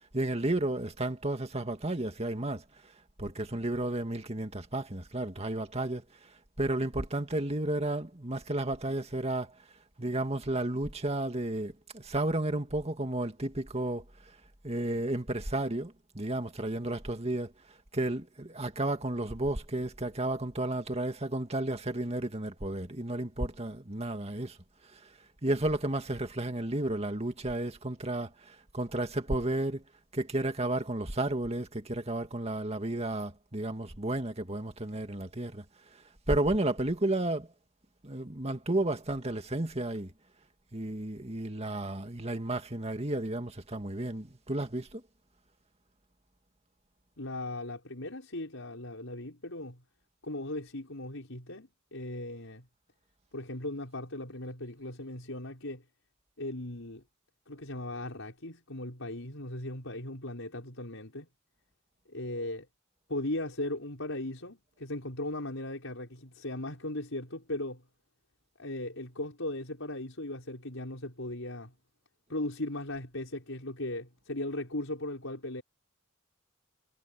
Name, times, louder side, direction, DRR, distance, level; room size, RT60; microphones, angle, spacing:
voice 1, 0.1-2.9 3.2-6.0 6.6-9.5 10.0-14.0 14.6-17.5 17.9-24.6 24.9-25.0 25.4-29.8 30.1-35.6 35.9-36.0 36.3-37.5 38.0-40.1 40.7-45.0, right 1 dB, 30° right, 2.1 m, -32 dB
voice 2, 47.2-49.8 50.2-52.7 53.3-55.8 56.4-57.0 57.5-61.3 62.1-62.7 63.1-67.8 68.6-71.7 72.3-75.6, left 1 dB, 80° left, 5.3 m, -38 dB
head